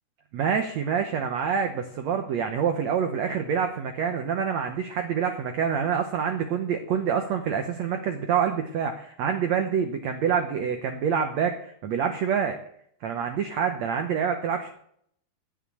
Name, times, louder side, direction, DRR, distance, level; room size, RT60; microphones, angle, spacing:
voice 1, 0.3-12.6 13.0-14.7, right 7 dB, 90° right, 5 dB, 1.5 m, -26 dB
16.5 x 6.1 x 8.4 m, 0.68 s
omnidirectional pair, 4.6 m